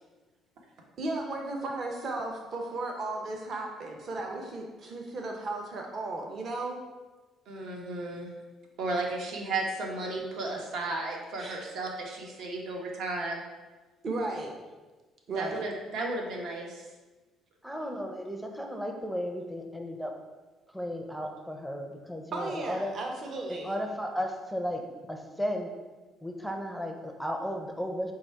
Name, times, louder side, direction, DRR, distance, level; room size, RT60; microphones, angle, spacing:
voice 1, 1.0-6.8 11.4-11.6 14.0-14.5 15.3-15.7 22.3-23.8, right 2 dB, 45° right, 2 dB, 0.7 m, -35 dB
voice 2, 7.5-8.3 8.8-13.4 15.3-16.8, right 2 dB, 75° right, 0 dB, 0.9 m, -34 dB
voice 3, 17.6-20.1 20.7-23.0 23.5-24.8 25.1-25.7 26.2-28.1, equal, ahead, 3 dB, 0.5 m, -34 dB
4.8 x 2.4 x 4.5 m, 1.2 s
cardioid pair, 115°, 0 cm